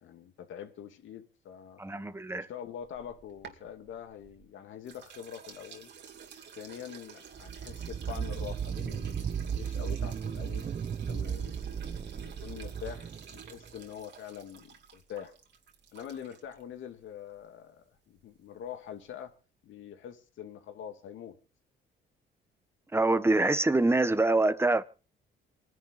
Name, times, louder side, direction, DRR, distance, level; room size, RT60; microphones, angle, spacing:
voice 1, 0.0-1.8 2.3-5.9 6.5-10.7 11.1-15.3 15.9-19.3 19.6-21.4, left 9 dB, 75° left, 2.4 m, -44 dB
voice 2, 1.8-2.5 22.9-24.8, right 2 dB, 10° right, 1.3 m, -25 dB
sound 1, 2.8-4.4 4.9-16.6, right 7 dB, 65° right, 2.7 m, -51 dB
sound 2, 7.3-13.8, right 7 dB, 35° right, 0.6 m, -35 dB
27.5 x 11.0 x 2.6 m
cardioid pair, 90°, 20 cm